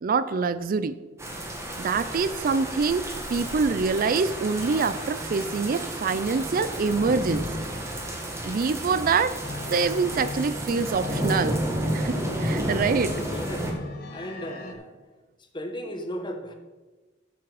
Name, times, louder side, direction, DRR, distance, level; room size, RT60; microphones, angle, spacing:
voice 1, 0.0-1.0 1.8-7.5 8.4-9.4 9.7-11.6 11.9-13.1, right 5 dB, 50° right, 14 dB, 0.4 m, -25 dB
sound 1, 1.2-13.7, right 1 dB, 15° right, 1.7 m, -31 dB
sound 2, 9.4-14.7, left 2 dB, 55° left, 1.5 m, -38 dB
voice 2, 13.0-13.7 14.1-15.0 15.5-16.5, equal, 25° left, 5 dB, 1.2 m, -35 dB
13.5 x 6.0 x 4.8 m, 1.2 s
head